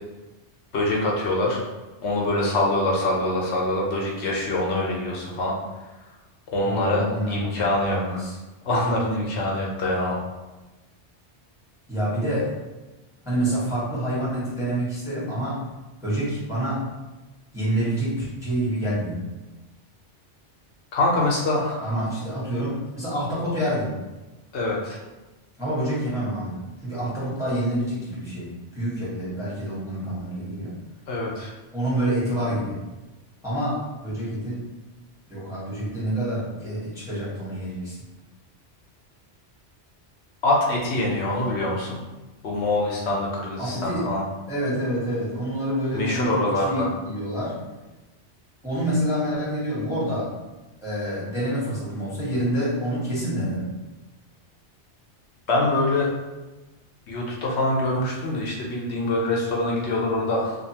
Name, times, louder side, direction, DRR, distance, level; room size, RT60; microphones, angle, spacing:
voice 1, 0.7-1.6 2.0-5.5 6.5-8.2 8.6-10.2 20.9-22.0 24.5-25.0 31.1-31.5 40.4-42.0 42.4-44.2 45.9-46.9 55.5-56.1 57.1-60.6, left 2 dB, 75° left, -2 dB, 0.9 m, -24 dB
voice 2, 6.6-8.3 11.9-12.5 13.2-15.6 16.0-16.8 17.5-19.2 21.8-24.0 25.6-30.7 31.7-32.8 33.4-34.6 35.3-38.0 43.6-44.1 44.5-47.6 48.6-50.3 50.8-53.7, right 1 dB, 5° right, -9 dB, 0.9 m, -27 dB
2.5 x 2.4 x 2.7 m, 1.1 s
omnidirectional pair, 1.2 m